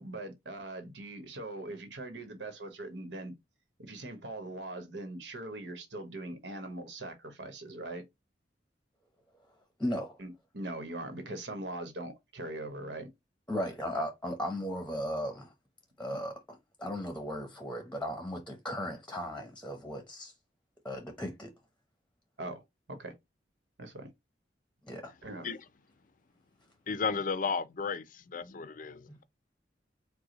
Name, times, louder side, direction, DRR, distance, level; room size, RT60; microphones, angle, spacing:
voice 1, 0.0-3.3 3.8-8.0 10.2-13.1 16.1-16.2 22.4-22.6 22.9-23.1 23.8-24.1 25.2-25.5, right 2 dB, 90° right, 1.2 m, -41 dB
voice 2, 9.8-10.2 13.5-15.5 16.0-20.3 20.8-21.5 24.8-25.1 29.1-29.2, equal, 5° left, 0.8 m, -36 dB
voice 3, 26.9-29.2, left 5 dB, 50° left, 0.5 m, -34 dB
4.8 x 2.2 x 3.9 m
head